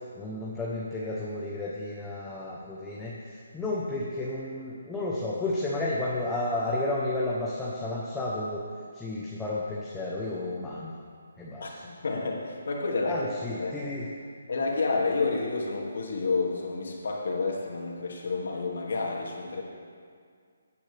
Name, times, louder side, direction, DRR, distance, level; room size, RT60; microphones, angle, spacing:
voice 1, 0.2-8.6 8.9-10.9 11.4-11.9 13.0-14.1, left 2 dB, 5° left, -6 dB, 0.9 m, -32 dB
voice 2, 11.6-13.3 13.6-13.8 14.5-19.6, left 3 dB, 65° left, -1 dB, 2.3 m, -30 dB
17.0 x 9.5 x 3.4 m, 2.1 s
hypercardioid pair, 170°, 0 cm